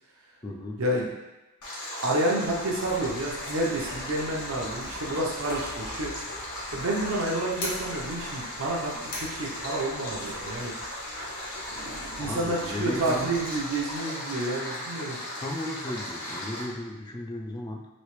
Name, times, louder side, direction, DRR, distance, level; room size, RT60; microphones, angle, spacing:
voice 1, 0.4-0.8 12.2-13.4 15.4-17.9, left 1 dB, 20° left, 1 dB, 0.3 m, -35 dB
Stream, 1.6-16.6, left 1 dB, 90° left, 1.0 m, -37 dB
voice 2, 2.0-6.1 6.7-10.7 11.8-15.2, right 1 dB, 70° right, -3 dB, 0.7 m, -29 dB
sound 1, 2.4-14.0, left 1 dB, 45° left, 0.9 m, -44 dB
3.1 x 2.8 x 3.1 m, 1.1 s
head